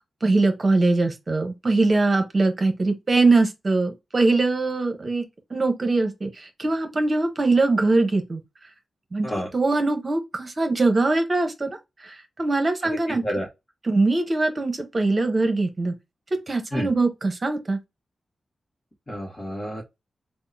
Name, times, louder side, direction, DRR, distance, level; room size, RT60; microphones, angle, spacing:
voice 1, 0.2-5.2 5.5-6.3 6.6-8.4 9.1-13.2 13.9-15.9 16.3-17.8, right 3 dB, 35° right, 0.9 m, -22 dB
voice 2, 12.8-13.5 16.7-16.9 19.1-19.8, equal, 30° left, 1.2 m, -30 dB
3.7 x 2.1 x 4.0 m
wide cardioid pair, 115°, 0 cm